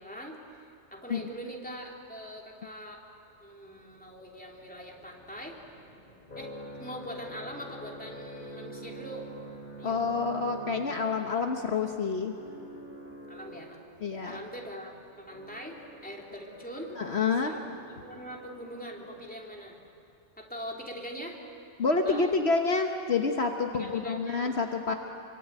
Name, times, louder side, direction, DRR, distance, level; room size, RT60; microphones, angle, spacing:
voice 1, 0.0-3.0 3.4-5.6 6.3-6.5 6.8-9.3 9.8-10.1 13.3-13.8 14.2-14.9 15.2-17.0 17.4-19.8 20.4-21.4 22.0-22.5 23.7-24.6, equal, 5° left, -1 dB, 3.2 m, -42 dB
sound 1, 3.5-19.7, right 1 dB, 40° left, 3.7 m, -47 dB
voice 2, 9.8-12.3 14.0-14.4 17.0-17.5 21.8-24.9, left 4 dB, 55° left, 3 dB, 1.5 m, -28 dB
26.0 x 24.5 x 9.0 m, 2.5 s
omnidirectional pair, 1.3 m